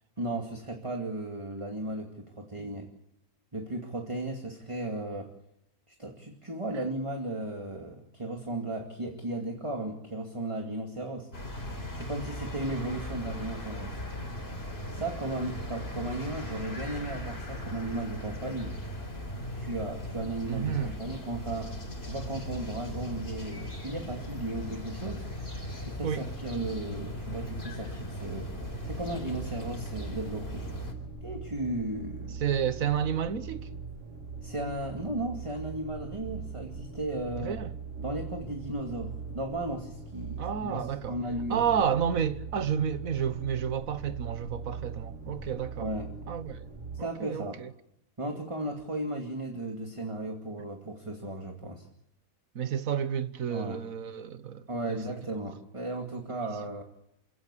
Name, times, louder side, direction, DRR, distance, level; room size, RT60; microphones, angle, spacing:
voice 1, 0.2-2.9 3.5-5.3 5.9-11.3 11.9-14.0 14.9-18.8 19.6-21.7 22.0-25.3 25.8-28.6 28.8-30.7 31.2-32.4 34.4-37.6 38.0-41.8 45.8-46.1 46.9-47.6 48.2-51.9 53.5-53.8 54.7-56.8, right 2 dB, 20° right, 2.4 m, -35 dB
sound 1, 11.3-30.9, left 1 dB, 45° left, 4.5 m, -38 dB
voice 2, 20.4-21.0 26.0-26.2 32.4-33.7 37.4-37.7 40.4-41.2 41.5-45.9 46.3-46.7 47.0-47.7 52.5-55.0, right 8 dB, 75° right, 1.6 m, -31 dB
sound 2, 28.5-47.0, right 4 dB, 60° right, 2.6 m, -41 dB
28.0 x 17.5 x 8.4 m
omnidirectional pair, 1.4 m